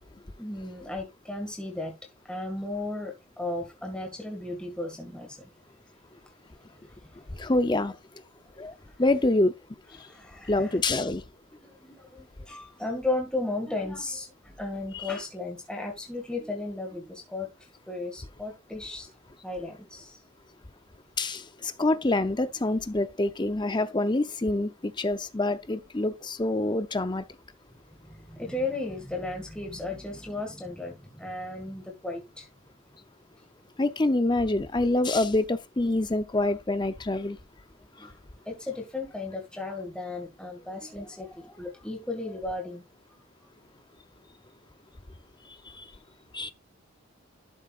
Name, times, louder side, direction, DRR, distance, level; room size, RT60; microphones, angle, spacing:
voice 1, 0.4-2.0 2.2-5.5 6.8-7.4 10.0-10.8 11.6-17.5 17.9-19.1 19.4-20.2 28.0-32.5 38.0-38.2 38.5-42.8, left 2 dB, 5° left, 1.9 m, -35 dB
voice 2, 7.3-8.0 8.6-8.7 9.0-9.5 9.9-10.1 10.5-11.2 14.9-15.1 21.2-27.2 33.8-37.4 38.0-38.1 45.5-45.9 46.3-46.5, left 2 dB, 20° left, 0.6 m, -26 dB
11.5 x 6.4 x 2.4 m
head